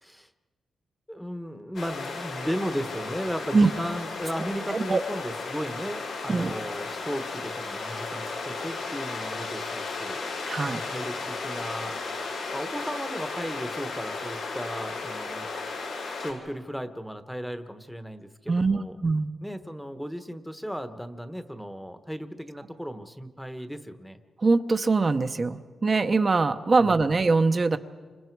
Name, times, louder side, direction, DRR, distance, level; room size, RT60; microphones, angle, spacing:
voice 1, 1.1-10.2 10.6-12.0 12.5-15.5 16.2-18.9 19.4-24.2 26.8-27.0, equal, ahead, 9 dB, 1.1 m, -35 dB
sound 1, 1.7-16.3, left 4 dB, 80° left, 6.8 m, -35 dB
voice 2, 4.7-5.0 6.3-6.5 10.5-10.8 18.5-19.3 24.4-27.8, right 3 dB, 35° right, 8 dB, 0.8 m, -23 dB
29.5 x 26.0 x 4.7 m, 1.5 s
wide cardioid pair, 115°, 0 cm